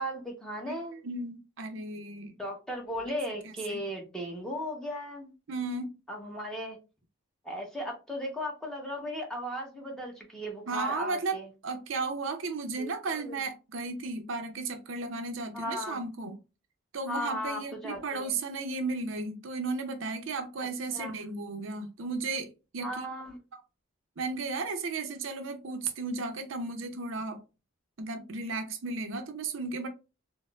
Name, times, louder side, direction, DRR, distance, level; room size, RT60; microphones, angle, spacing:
voice 1, 0.0-1.0 2.4-5.3 6.1-6.8 7.4-11.5 12.8-13.4 15.5-16.0 17.1-18.4 20.9-21.1 22.8-23.4, equal, 5° left, 0.8 m, -36 dB
voice 2, 1.0-2.3 3.7-3.8 5.5-5.9 10.7-16.4 16.9-23.0 24.2-27.4 28.0-29.9, right 3 dB, 70° right, 0.5 m, -34 dB
4.2 x 2.0 x 2.3 m
head